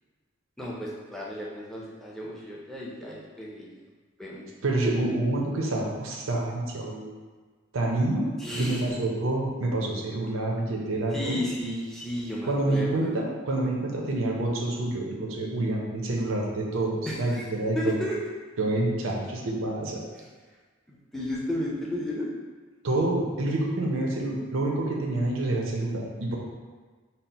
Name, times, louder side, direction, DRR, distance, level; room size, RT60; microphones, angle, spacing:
voice 1, 0.6-3.7 4.2-4.5 8.4-9.0 11.1-13.1 17.0-17.5 17.7-18.2 20.2-20.3 20.9-22.3, equal, ahead, -5 dB, 0.5 m, -33 dB
voice 2, 4.6-7.1 7.7-8.3 8.6-11.4 12.5-18.0 18.6-20.0 22.8-26.4, right 2 dB, 80° right, -2 dB, 0.6 m, -27 dB
4.2 x 2.0 x 4.1 m, 1.4 s
head